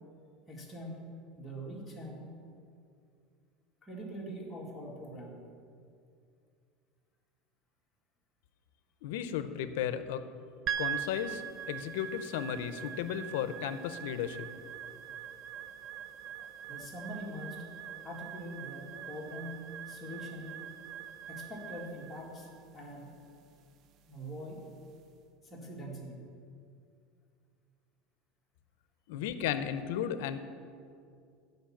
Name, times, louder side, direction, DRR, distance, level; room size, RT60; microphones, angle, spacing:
voice 1, 0.5-1.0 1.3-2.3 3.8-5.4 16.4-17.6 17.9-20.6 21.3-23.1 24.1-24.6 25.4-26.3 29.1-29.3, equal, 5° left, -5 dB, 1.9 m, -43 dB
voice 2, 9.0-10.2 10.8-11.4 11.7-14.5 29.1-30.4, left 9 dB, 85° left, 11 dB, 0.6 m, -34 dB
sound 1, 10.7-25.0, right 9 dB, 40° right, 0.4 m, -43 dB
10.5 x 5.4 x 7.2 m, 2.4 s
cardioid pair, 160°, 0 cm